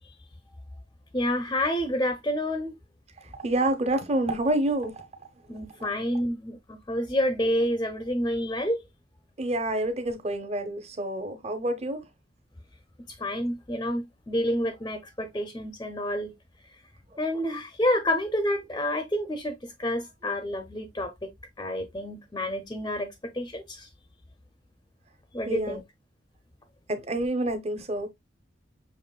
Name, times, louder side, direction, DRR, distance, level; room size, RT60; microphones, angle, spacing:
voice 1, 1.1-2.7 5.5-8.8 13.1-16.3 16.7-16.8 17.2-21.3 21.6-23.9 25.3-25.8, left 1 dB, 20° left, 0.5 m, -29 dB
voice 2, 3.2-5.1 5.5-5.6 9.4-12.0 17.1-17.2 25.4-25.8 26.9-28.1, right 1 dB, 35° right, 0.7 m, -28 dB
6.4 x 3.0 x 2.2 m
head